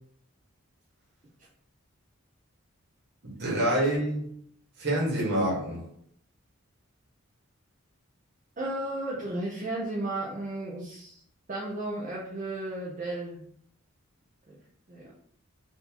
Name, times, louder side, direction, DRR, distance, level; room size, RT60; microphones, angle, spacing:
voice 1, 3.2-4.3 4.8-5.9, right 1 dB, 50° right, -4 dB, 1.3 m, -27 dB
voice 2, 8.6-11.2 11.5-13.4 14.5-14.6 14.9-15.1, right 2 dB, 35° right, -6 dB, 0.6 m, -34 dB
3.8 x 2.7 x 2.9 m, 0.65 s
head